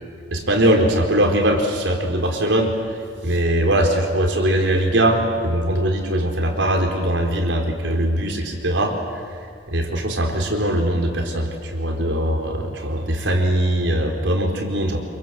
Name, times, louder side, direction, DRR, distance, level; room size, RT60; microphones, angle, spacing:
voice 1, 0.3-9.0 9.3-15.0, right 1 dB, 85° right, 2 dB, 4.3 m, -21 dB
27.5 x 24.0 x 7.8 m, 2.3 s
head